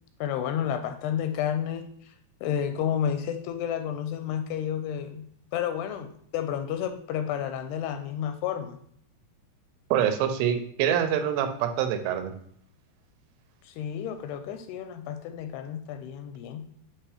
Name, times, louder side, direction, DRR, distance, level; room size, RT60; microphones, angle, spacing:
voice 1, 0.2-2.1 2.4-5.3 5.5-8.8 13.6-16.7, left 9 dB, 85° left, 7 dB, 2.4 m, -31 dB
voice 2, 9.9-12.3, right 9 dB, 90° right, 8 dB, 2.9 m, -25 dB
8.4 x 2.9 x 4.8 m, 0.63 s
omnidirectional pair, 4.8 m